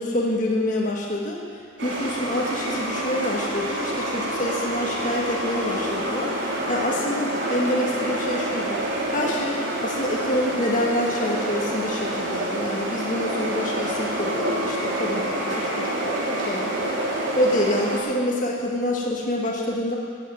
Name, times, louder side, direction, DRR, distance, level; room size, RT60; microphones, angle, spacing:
voice 1, 0.0-1.4 1.8-8.8 9.1-20.0, left 1 dB, 40° left, -3 dB, 1.8 m, -27 dB
sound 1, 1.8-18.0, right 1 dB, 65° right, 3.2 m, -27 dB
15.0 x 8.9 x 9.0 m, 2.3 s
head